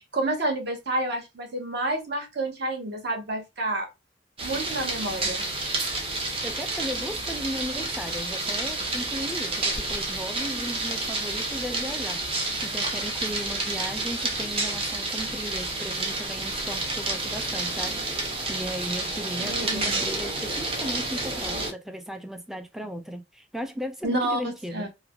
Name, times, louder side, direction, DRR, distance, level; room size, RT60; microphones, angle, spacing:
voice 1, 0.0-3.9 4.4-5.4 19.4-19.9 24.0-24.9, right 2 dB, 55° right, 0.9 m, -29 dB
sound 1, 4.4-21.7, right 2 dB, 30° right, 0.7 m, -30 dB
voice 2, 6.4-24.9, equal, ahead, 0.3 m, -36 dB
3.1 x 2.1 x 2.3 m
head